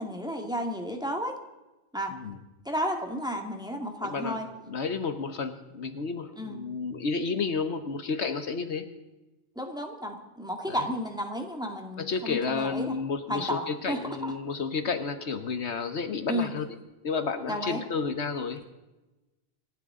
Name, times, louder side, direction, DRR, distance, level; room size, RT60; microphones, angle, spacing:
voice 1, 0.0-1.3 1.9-2.1 2.7-4.5 6.4-6.6 9.6-13.0 13.3-14.3 16.3-16.5 17.5-17.8, equal, 5° right, 3 dB, 1.8 m, -32 dB
voice 2, 2.1-2.4 4.0-4.4 4.7-8.8 10.7-10.9 12.0-16.7 17.0-18.6, left 4 dB, 70° left, 9 dB, 1.3 m, -31 dB
27.0 x 12.0 x 3.7 m, 1.1 s
omnidirectional pair, 1.2 m